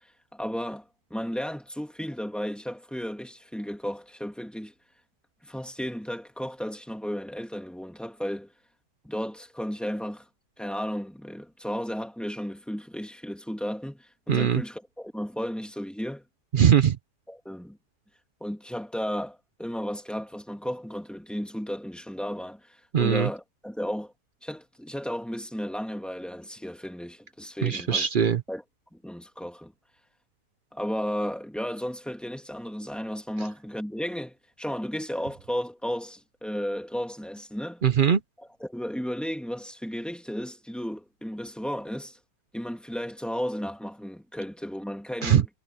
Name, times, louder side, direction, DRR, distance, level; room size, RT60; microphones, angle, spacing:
voice 1, 0.3-4.7 5.4-8.5 9.0-10.3 10.6-16.3 17.3-17.8 18.4-24.1 24.4-28.1 28.5-28.6 28.9-29.7 30.7-37.8 38.6-42.2 42.5-45.5, equal, ahead, 2.3 m, -34 dB
voice 2, 14.3-14.6 16.5-17.0 22.9-23.3 27.6-28.4 37.8-38.2 45.2-45.4, right 8 dB, 75° right, 0.4 m, -21 dB
omnidirectional pair, 1.8 m